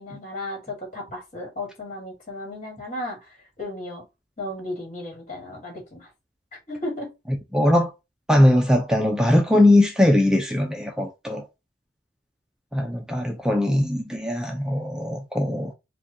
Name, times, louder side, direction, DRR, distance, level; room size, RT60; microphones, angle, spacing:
voice 1, 0.0-4.0 4.4-6.1 6.7-7.1, left 1 dB, 40° left, 1.7 m, -34 dB
voice 2, 7.5-7.9 8.3-11.5 12.7-15.7, left 1 dB, 5° right, 0.4 m, -20 dB
4.8 x 2.3 x 2.7 m
head